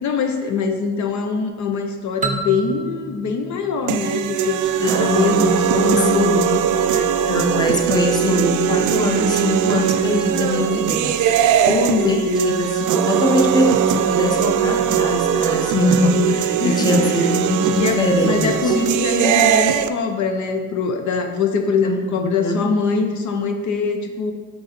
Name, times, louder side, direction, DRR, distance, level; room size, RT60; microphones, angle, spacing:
voice 1, 0.0-7.1 11.6-12.9 16.6-17.4 17.8-24.3, left 5 dB, 70° left, 5 dB, 0.7 m, -23 dB
sound 1, 2.2-4.9, right 4 dB, 25° right, 0.6 m, -30 dB
sound 2, 3.9-19.9, right 9 dB, 75° right, 0.5 m, -20 dB
voice 2, 4.8-6.5 7.1-11.2 12.0-18.7 21.8-22.6, left 1 dB, 15° left, 2 dB, 0.8 m, -22 dB
6.5 x 4.1 x 4.2 m, 1.5 s
cardioid pair, 90°, 30 cm